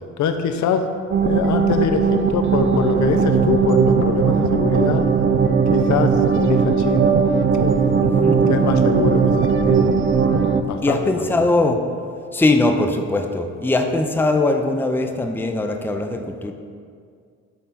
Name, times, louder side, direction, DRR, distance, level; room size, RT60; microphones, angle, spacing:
voice 1, 0.2-0.9 1.2-5.0 5.7-7.1 7.6-8.0 8.5-9.9 10.7-11.5, left 6 dB, 70° left, 7 dB, 0.7 m, -24 dB
sound 1, 1.1-10.6, right 5 dB, 40° right, 0.5 m, -18 dB
voice 2, 8.0-8.4 10.8-11.8 12.3-16.5, left 2 dB, 5° left, 5 dB, 0.5 m, -20 dB
10.0 x 3.6 x 4.1 m, 2.2 s
cardioid pair, 90°, 30 cm